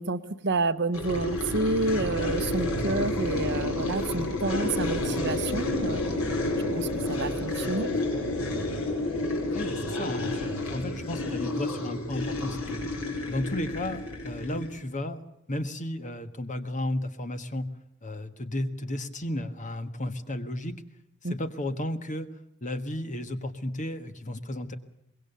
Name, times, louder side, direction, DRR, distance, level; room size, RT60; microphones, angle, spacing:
voice 1, 0.0-6.0 6.7-7.9 21.2-21.3, right 3 dB, 55° right, 12 dB, 1.0 m, -29 dB
sound 1, 0.9-14.8, left 2 dB, 75° left, 4.9 m, -30 dB
voice 2, 9.5-12.8 13.3-15.2 15.5-17.7 18.0-20.7 21.2-22.3 22.6-24.8, left 1 dB, 35° left, 9 dB, 1.5 m, -33 dB
24.5 x 21.0 x 6.8 m, 0.81 s
head